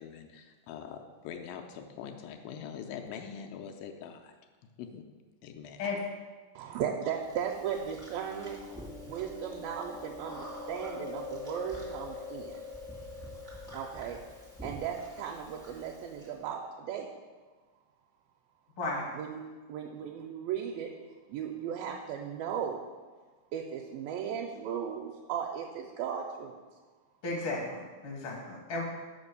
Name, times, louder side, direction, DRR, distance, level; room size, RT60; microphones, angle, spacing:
voice 1, 0.0-4.3 4.8-5.0 5.4-5.8, left 7 dB, 80° left, 4 dB, 2.2 m, -43 dB
voice 2, 6.6-8.6 9.1-12.6 13.7-14.2 14.6-17.1 19.2-19.4 19.7-20.9 21.3-22.8 23.5-26.6, right 8 dB, 80° right, 1 dB, 2.2 m, -36 dB
Chewing mastication, 7.3-16.3, left 2 dB, 5° left, 0.4 m, -44 dB
voice 3, 27.2-28.8, left 3 dB, 65° left, -2 dB, 1.4 m, -34 dB
5.5 x 5.2 x 6.6 m, 1.4 s
omnidirectional pair, 4.2 m